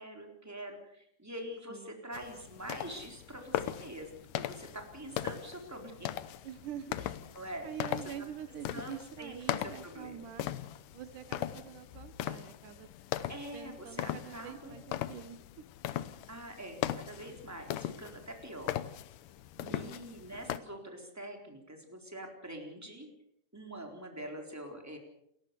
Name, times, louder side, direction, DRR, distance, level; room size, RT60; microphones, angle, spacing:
voice 1, 0.0-6.1 7.3-7.7 8.7-10.2 13.3-14.8 16.3-18.7 19.7-23.1 23.5-25.0, right 1 dB, 5° right, 3 dB, 3.7 m, -45 dB
voice 2, 1.7-2.0 6.4-7.1 7.6-10.5 10.9-12.9 13.5-15.6 19.5-20.0, right 10 dB, 80° right, 11 dB, 2.7 m, -45 dB
sound 1, 2.1-20.6, left 13 dB, 80° left, 2.5 m, -39 dB
29.0 x 15.0 x 6.9 m, 0.76 s
omnidirectional pair, 3.7 m